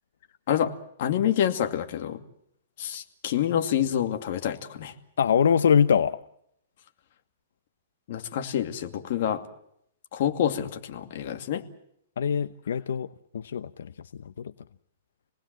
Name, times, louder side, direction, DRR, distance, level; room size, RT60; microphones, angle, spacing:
voice 1, 1.0-2.2 2.8-4.9 8.1-9.4 10.1-11.6, left 10 dB, 50° left, 2.4 m, -27 dB
voice 2, 5.2-6.2 12.2-13.1 13.3-13.9 14.4-14.5, left 7 dB, 80° left, 0.9 m, -23 dB
28.0 x 19.0 x 7.6 m
hypercardioid pair, 160°, 0 cm